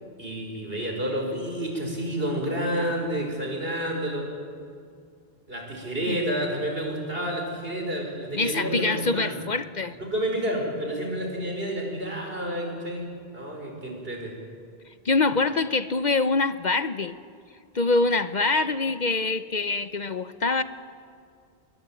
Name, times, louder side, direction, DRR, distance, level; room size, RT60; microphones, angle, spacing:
voice 1, 0.2-4.3 5.5-9.4 10.0-14.3, right 1 dB, 70° right, 2 dB, 5.7 m, -30 dB
voice 2, 8.3-10.0 15.0-17.1 17.7-20.6, left 3 dB, 50° left, 12 dB, 0.9 m, -24 dB
28.0 x 22.0 x 9.1 m, 2.3 s
omnidirectional pair, 1.0 m